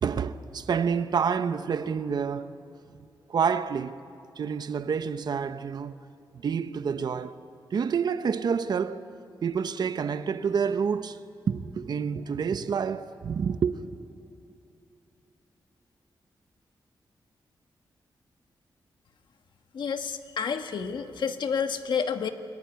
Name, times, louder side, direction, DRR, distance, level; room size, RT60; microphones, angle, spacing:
voice 1, 0.0-2.5 2.9-3.0 3.3-4.0 4.4-5.9 6.3-7.4 7.7-9.0 9.4-11.2 11.5-13.8, right 6 dB, 60° right, 0.8 m, -28 dB
voice 2, 19.7-22.3, left 6 dB, 70° left, 1.4 m, -29 dB
28.0 x 20.0 x 9.4 m
wide cardioid pair, 175°, 8 cm